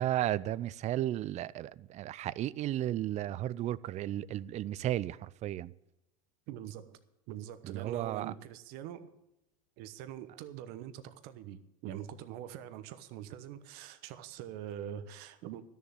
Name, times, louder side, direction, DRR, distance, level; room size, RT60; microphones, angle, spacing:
voice 1, 0.0-5.7 7.6-8.3, right 13 dB, 40° right, 0.5 m, -34 dB
voice 2, 6.5-7.0 7.3-9.1 9.8-15.6, right 10 dB, 60° right, 1.0 m, -44 dB
12.5 x 7.1 x 8.8 m
hypercardioid pair, 95°, 18 cm